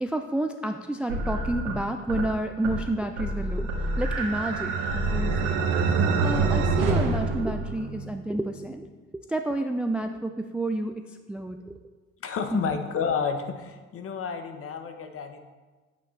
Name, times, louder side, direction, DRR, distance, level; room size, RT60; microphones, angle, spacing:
voice 1, 0.0-5.7 6.2-8.9 9.3-11.8 12.5-12.8, right 1 dB, 5° right, 6 dB, 0.3 m, -30 dB
sound 1, 1.1-2.3 2.6-2.9 3.2-7.9, right 1 dB, 85° right, 1.9 m, -30 dB
sound 2, 3.7-8.2, right 5 dB, 70° right, 1.1 m, -27 dB
voice 2, 12.2-15.5, left 6 dB, 40° left, 7 dB, 1.0 m, -30 dB
8.9 x 8.2 x 3.2 m, 1.3 s
hypercardioid pair, 70°, 35 cm